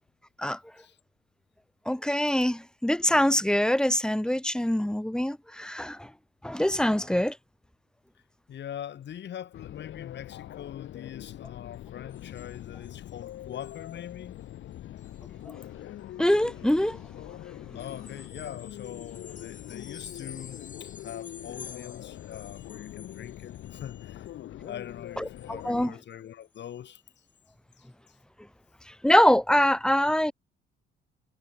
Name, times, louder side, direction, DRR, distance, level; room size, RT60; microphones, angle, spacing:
voice 1, 1.9-6.1 6.4-7.4 16.2-17.0 25.2-25.9 29.0-30.3, left 1 dB, 5° left, 0.8 m, -24 dB
voice 2, 8.5-14.4 17.7-24.3 24.7-27.0 27.8-28.2, left 10 dB, 65° left, 2.4 m, -42 dB
sound 1, 9.5-25.9, left 13 dB, 80° left, 3.7 m, -43 dB
sound 2, 12.1-13.2 13.5-14.1 14.4-14.6 15.0-15.2 17.8-24.3 24.6-25.8 26.1-26.2 26.4-26.8 27.3-27.4, left 6 dB, 40° left, 2.1 m, -50 dB
cardioid pair, 90°, 20 cm